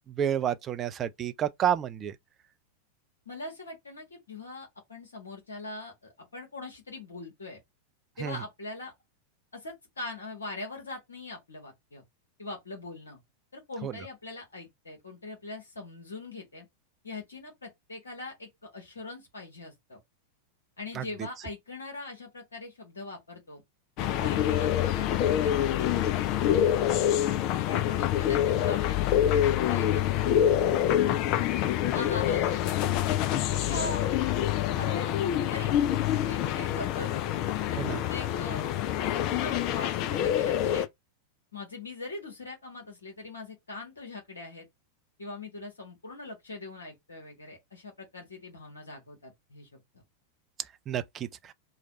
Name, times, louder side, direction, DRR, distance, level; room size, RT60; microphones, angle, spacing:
voice 1, 0.1-2.1 8.2-8.4 13.8-13.9 20.9-21.0 37.8-38.0 50.9-51.5, right 9 dB, 25° right, 0.4 m, -30 dB
voice 2, 3.2-7.6 8.2-8.9 9.5-12.0 12.4-13.2 13.5-16.6 17.0-20.0 20.8-23.6 24.0-26.1 27.7-30.0 30.4-31.5 31.9-32.7 33.6-34.2 34.8-35.1 35.5-35.7 36.2-37.3 37.7-38.7 39.0-40.9 41.5-44.7 45.2-49.7 49.9-50.0, left 3 dB, 70° left, 1.4 m, -41 dB
sound 1, 24.0-40.9, left 11 dB, 40° left, 0.4 m, -26 dB
3.2 x 2.4 x 4.1 m
figure-of-eight pair, 90°, 0 cm